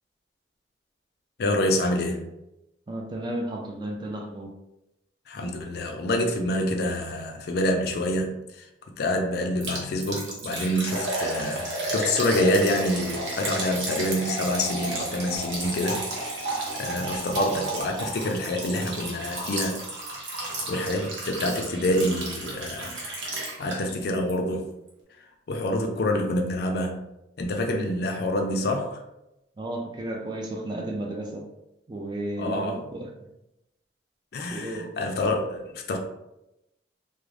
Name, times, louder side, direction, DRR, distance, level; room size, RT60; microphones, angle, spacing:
voice 1, 1.4-2.2 5.3-8.7 9.0-19.8 20.7-23.0 23.6-24.7 25.5-27.0 27.4-29.0 32.4-32.8 34.3-36.0, left 1 dB, 55° left, 3 dB, 0.4 m, -27 dB
voice 2, 2.9-4.5 29.6-31.4 31.9-33.1 34.5-34.9, right 1 dB, 25° right, 1 dB, 0.3 m, -33 dB
Liquid, 9.6-24.0 24.3-24.4 24.9-25.0, right 1 dB, 80° right, 0.7 m, -32 dB
2.4 x 2.0 x 3.1 m, 0.88 s
head